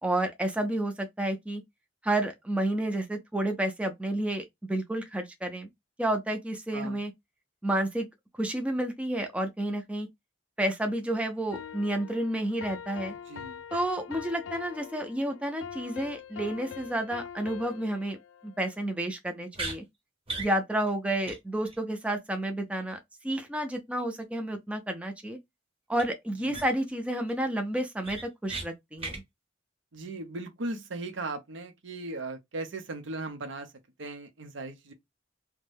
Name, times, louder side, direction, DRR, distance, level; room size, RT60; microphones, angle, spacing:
voice 1, 0.0-1.6 2.0-5.7 6.0-7.1 7.6-8.1 8.4-10.1 10.6-13.1 13.7-18.2 18.4-19.8 20.4-23.0 23.2-25.4 25.9-29.2, right 1 dB, 5° right, 0.4 m, -30 dB
sound 1, 11.5-18.8, left 7 dB, 75° left, 0.3 m, -43 dB
voice 2, 13.1-13.6 26.4-26.6 29.9-33.7 34.0-34.9, right 2 dB, 70° right, 0.7 m, -38 dB
sound 2, 19.5-19.8 20.3-20.5 20.9-21.0 21.2-21.4 21.6-21.8 25.9-26.0 26.5-26.9 27.3-27.4 27.7-28.7 29.0-29.2, right 3 dB, 30° right, 0.9 m, -36 dB
2.6 x 2.2 x 3.3 m
head